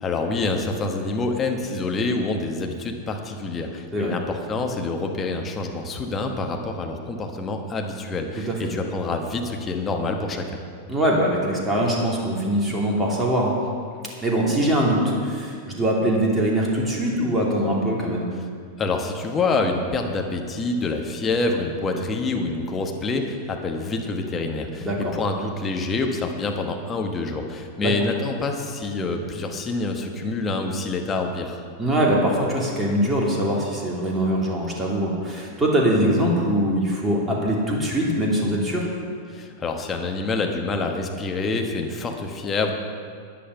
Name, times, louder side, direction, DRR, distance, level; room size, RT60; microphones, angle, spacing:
voice 1, 0.0-10.6 18.8-31.6 39.3-42.7, left 3 dB, 20° left, 3 dB, 1.2 m, -27 dB
voice 2, 10.9-13.6 14.2-18.3 24.8-25.1 27.8-27.9 31.8-38.9, right 1 dB, 10° right, -3 dB, 2.8 m, -22 dB
10.0 x 10.0 x 5.7 m, 2.1 s
figure-of-eight pair, 90°, 0 cm